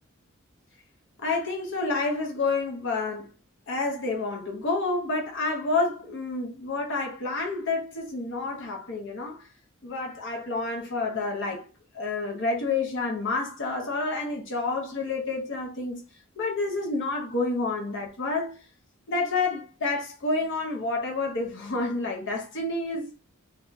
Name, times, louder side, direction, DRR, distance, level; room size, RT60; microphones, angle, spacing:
voice 1, 1.2-3.3 3.7-9.5 9.8-11.7 11.9-16.0 16.4-18.5 19.1-23.1, left 3 dB, 60° left, 0.7 m, -29 dB
2.6 x 2.3 x 3.9 m
head